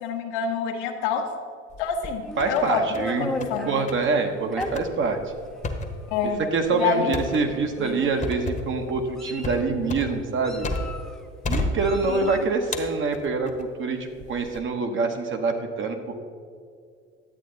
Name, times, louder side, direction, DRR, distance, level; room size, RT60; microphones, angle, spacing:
voice 1, 0.0-1.3 1.8-2.8 3.2-3.8 6.1-6.4 6.7-7.4 12.1-12.3, left 6 dB, 65° left, 3 dB, 1.3 m, -27 dB
sound 1, 1.7-2.6 2.9-3.6 3.9-4.1 4.6-11.1 11.4-12.3 12.7-13.7 14.2-14.6, left 2 dB, 20° left, 1.3 m, -32 dB
Meow, 2.2-3.9 4.5-4.7 5.6-5.7 6.1-6.3 7.3-7.4 7.8-8.3 8.9-9.6 10.4-11.2 11.8-12.5, left 1 dB, ahead, 0.9 m, -35 dB
voice 2, 2.4-5.2 6.2-10.7 11.5-14.0 14.3-16.1, right 4 dB, 35° right, 5 dB, 1.2 m, -25 dB
11.0 x 8.3 x 3.9 m, 2.2 s
hypercardioid pair, 80°, 36 cm